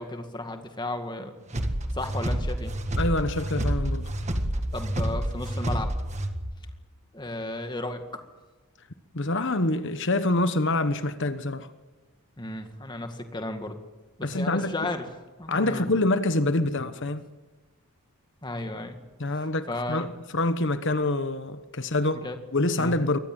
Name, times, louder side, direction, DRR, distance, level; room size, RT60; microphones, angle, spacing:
voice 1, 0.0-1.3 1.9-2.7 4.5-5.9 7.1-8.2 12.4-13.8 14.2-15.0 15.4-15.8 18.4-19.0 19.7-20.1 22.2-22.4 22.8-23.0, left 2 dB, 20° left, 2.0 m, -34 dB
sound 1, 1.5-6.6, right 1 dB, 30° right, 1.7 m, -29 dB
voice 2, 3.0-4.1 9.1-11.7 14.2-14.9 15.5-17.2 19.2-22.3 22.5-23.2, left 2 dB, 55° left, 1.2 m, -26 dB
23.5 x 19.0 x 7.7 m
head